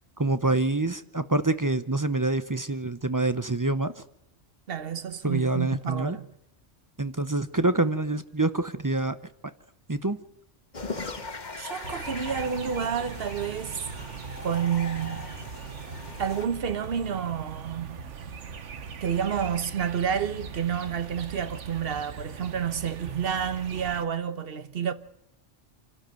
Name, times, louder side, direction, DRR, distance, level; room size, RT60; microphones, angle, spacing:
voice 1, 0.2-4.0 5.2-6.2 7.0-9.2 9.9-10.2, right 2 dB, 20° right, 0.7 m, -26 dB
voice 2, 4.7-6.2 11.6-13.8 14.4-15.3 16.2-18.0 19.0-24.9, right 8 dB, 55° right, 1.2 m, -29 dB
sound 1, 10.7-16.5, left 3 dB, 40° left, 1.6 m, -39 dB
sound 2, 11.8-24.0, right 5 dB, 85° right, 1.4 m, -40 dB
27.5 x 12.5 x 7.7 m
omnidirectional pair, 1.2 m